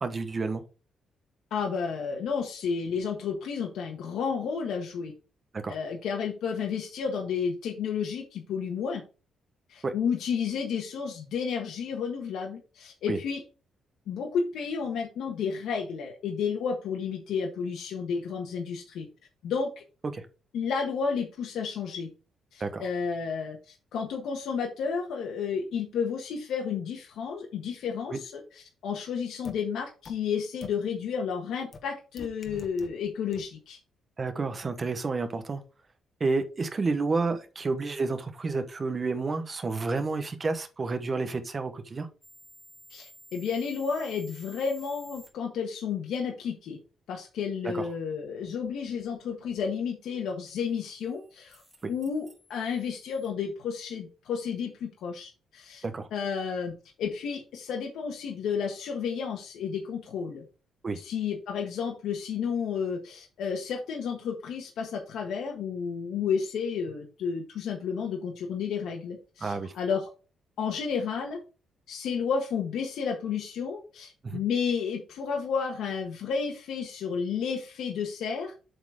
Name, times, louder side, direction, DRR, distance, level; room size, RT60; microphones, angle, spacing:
voice 1, 0.0-0.6 5.5-5.8 9.8-9.9 13.1-13.2 20.1-20.2 22.6-22.8 28.1-28.2 34.2-35.6 36.2-42.1 47.6-47.8 55.8-56.1 60.8-61.0 69.4-69.7 74.2-74.4, right 3 dB, 25° right, 8 dB, 1.0 m, -30 dB
voice 2, 1.5-5.1 5.7-9.0 9.7-13.4 14.1-19.1 19.4-19.8 20.5-22.1 22.5-33.8 42.9-46.8 47.1-51.6 51.9-55.8 56.1-60.4 60.9-70.1 70.6-71.4 71.9-78.6, left 6 dB, 75° left, 1 dB, 1.4 m, -31 dB
sound 1, 29.4-29.5 30.0-30.1 30.6-30.7 31.7-31.8 32.2-32.9 33.3-33.4, left 5 dB, 35° left, 1.2 m, -42 dB
sound 2, 42.2-45.3 50.5-53.3, equal, 5° right, 2.3 m, -54 dB
7.9 x 4.3 x 4.9 m, 0.34 s
cardioid pair, 150°, 0 cm